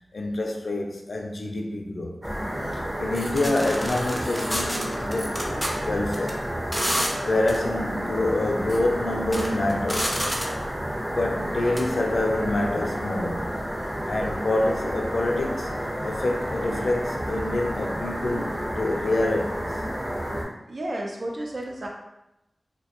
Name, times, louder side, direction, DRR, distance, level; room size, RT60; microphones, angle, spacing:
voice 1, 0.1-2.2 2.7-6.4 7.2-10.1 11.1-13.5 14.1-15.7 16.0-19.8, left 2 dB, 70° left, 0.4 m, -27 dB
sound 1, 2.2-20.4, equal, 30° right, 0.8 m, -30 dB
sound 2, 3.1-5.7 6.1-6.3 6.7-7.1 7.5-7.6 8.5-8.8 9.2-10.6 11.8-11.9, equal, 5° right, 0.5 m, -29 dB
voice 2, 20.7-21.9, right 1 dB, 70° right, 0.5 m, -32 dB
2.2 x 2.1 x 2.8 m
wide cardioid pair, 50°, 0 cm